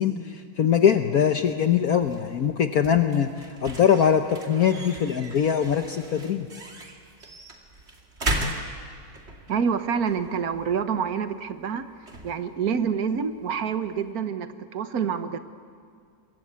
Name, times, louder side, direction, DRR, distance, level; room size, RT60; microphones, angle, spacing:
voice 1, 0.0-3.3 3.6-6.5, left 8 dB, 60° left, 6 dB, 1.3 m, -22 dB
sound 1, 1.4-14.1, right 1 dB, 35° right, 2.7 m, -38 dB
voice 2, 9.5-11.9 12.2-15.4, right 6 dB, 55° right, 9 dB, 1.6 m, -27 dB
26.5 x 22.5 x 8.2 m, 2.2 s
omnidirectional pair, 2.0 m